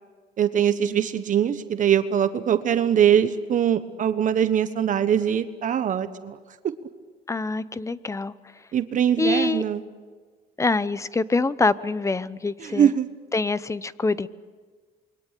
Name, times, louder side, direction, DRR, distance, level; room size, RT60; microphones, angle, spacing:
voice 1, 0.4-6.4 8.7-9.8 12.6-13.1, right 9 dB, 50° right, 11 dB, 1.2 m, -22 dB
voice 2, 7.3-8.3 9.2-9.6 10.6-12.9 13.3-14.3, left 3 dB, 15° left, 16 dB, 0.9 m, -25 dB
27.5 x 23.0 x 8.4 m, 1.5 s
cardioid pair, 110°, 17 cm